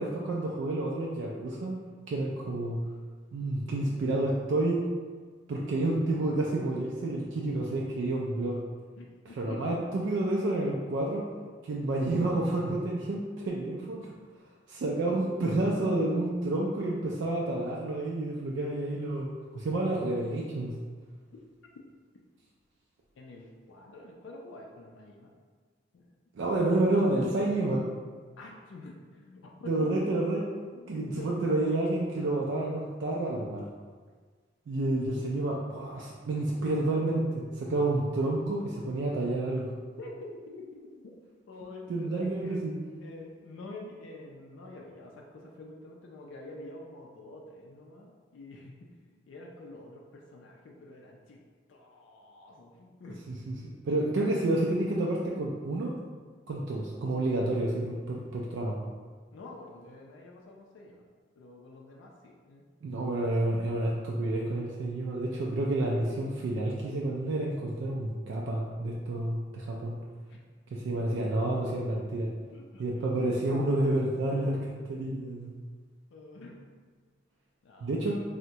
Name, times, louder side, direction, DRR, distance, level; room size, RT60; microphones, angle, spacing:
voice 1, 0.0-1.8 2.1-2.8 3.3-4.9 5.5-8.6 9.4-11.2 11.6-14.1 14.7-20.7 26.3-27.8 29.7-30.4 30.9-33.7 34.7-39.7 41.9-42.7 53.3-53.6 53.8-55.9 56.5-58.8 62.8-70.0 70.7-72.3 72.8-75.6 77.8-78.2, right 2 dB, 75° right, -2 dB, 0.3 m, -29 dB
voice 2, 9.0-9.8 23.2-25.3 25.9-26.1 28.4-30.0 30.7-31.4 40.0-40.6 41.0-41.1 41.5-42.6 43.0-48.9 49.3-51.4 51.7-53.2 59.3-61.0 61.4-62.6 70.3-70.4 72.5-73.1 76.1-76.6 77.6-78.1, left 2 dB, 90° left, -1 dB, 0.4 m, -47 dB
3.4 x 2.1 x 2.8 m, 1.5 s
head